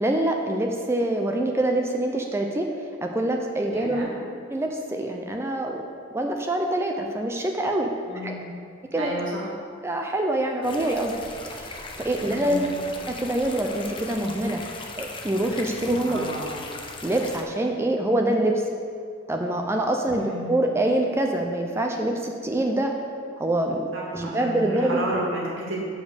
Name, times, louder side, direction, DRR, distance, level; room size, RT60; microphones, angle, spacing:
voice 1, 0.0-2.7 3.0-4.1 4.5-5.8 6.1-8.0 8.2-8.3 8.9-9.1 9.8-11.1 11.5-12.7 13.1-14.6 15.0-16.3 17.0-18.5 19.3-22.9 23.4-23.8 24.1-25.0, right 1 dB, 15° right, 2 dB, 0.4 m, -25 dB
voice 2, 3.7-4.1 8.1-8.4 9.0-9.5 12.3-12.7 16.1-16.6 20.0-20.5 23.9-25.8, equal, 70° right, -4 dB, 1.9 m, -32 dB
sound 1, 10.6-17.4, left 3 dB, 25° left, 0.6 m, -38 dB
7.0 x 5.1 x 6.5 m, 2.3 s
head